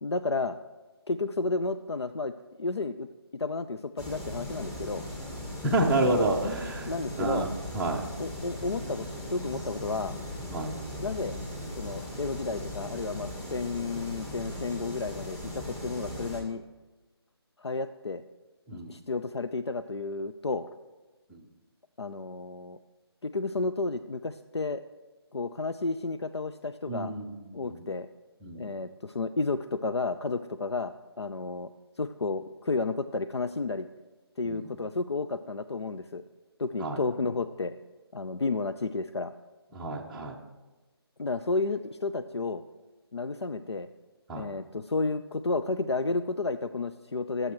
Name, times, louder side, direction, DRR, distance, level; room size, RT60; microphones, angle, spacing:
voice 1, 0.0-0.6 1.1-3.1 3.4-5.1 6.8-7.5 8.2-10.2 11.0-11.4 11.8-16.6 17.6-18.2 18.7-20.7 22.0-22.8 23.2-24.8 25.3-27.1 27.5-28.1 28.6-31.7 32.0-33.9 34.4-36.2 36.6-37.7 38.1-39.3 41.2-42.6 43.1-43.9 44.4-47.5, left 3 dB, 80° left, 10 dB, 0.5 m, -32 dB
sound 1, 4.0-16.4, left 1 dB, 15° left, 1.5 m, -38 dB
voice 2, 5.6-6.9 7.2-8.0 10.5-10.7 18.7-18.9 21.3-21.4 26.9-27.8 28.4-28.7 34.4-34.7 36.8-37.0 39.7-40.4 44.3-44.5, right 1 dB, 5° right, -3 dB, 0.6 m, -29 dB
20.5 x 7.7 x 3.1 m, 1.2 s
figure-of-eight pair, 150°, 14 cm